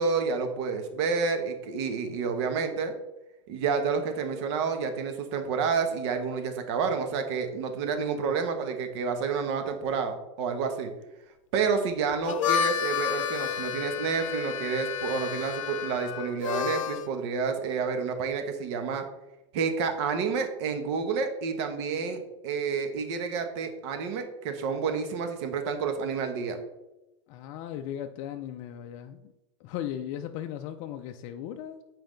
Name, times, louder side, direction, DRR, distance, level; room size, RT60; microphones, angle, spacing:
voice 1, 0.0-2.9 3.5-10.9 11.5-19.0 19.5-26.6, right 5 dB, 55° right, 6 dB, 1.2 m, -29 dB
Harmonica, 12.1-17.1, left 9 dB, 85° left, 0.6 m, -30 dB
voice 2, 27.3-29.3 29.6-31.8, left 10 dB, 45° left, 5 dB, 0.4 m, -37 dB
7.5 x 4.7 x 3.9 m, 0.96 s
supercardioid pair, 135°, 17 cm